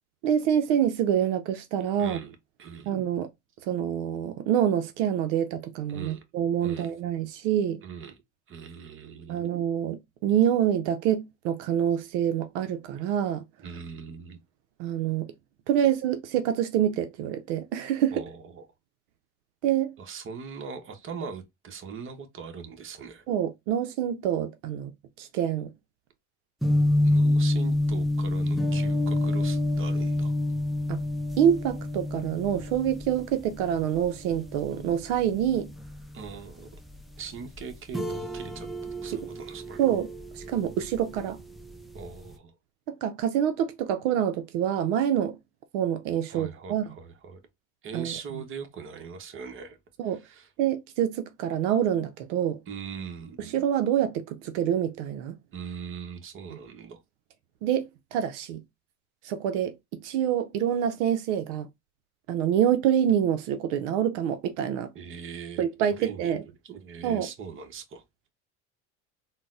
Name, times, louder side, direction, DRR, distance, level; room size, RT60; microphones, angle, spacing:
voice 1, 0.2-2.2 2.9-3.3 3.6-7.8 9.3-13.4 14.8-15.3 15.7-18.2 19.6-19.9 23.3-24.9 25.2-25.7 30.9-31.0 31.4-35.7 39.8-40.1 40.3-41.4 42.9-45.3 45.7-46.8 47.9-48.1 50.0-50.2 50.6-52.6 53.5-55.3 57.6-58.6 59.2-61.7 62.3-64.9 65.6-66.4 67.0-67.3, right 9 dB, 75° right, 0.5 m, -26 dB
voice 2, 2.0-2.9 5.9-6.2 6.6-6.9 7.8-8.2 8.5-9.5 13.6-14.4 18.1-18.7 20.0-23.2 27.0-30.3 36.1-36.8 37.2-38.7 39.0-39.8 41.9-42.5 46.3-47.4 47.8-49.8 50.0-50.5 52.7-53.5 55.5-57.0 64.9-65.6 66.0-68.0, right 6 dB, 35° right, 0.8 m, -41 dB
sound 1, 26.6-42.3, left 1 dB, ahead, 0.5 m, -29 dB
3.8 x 2.0 x 2.4 m
supercardioid pair, 90°, 36 cm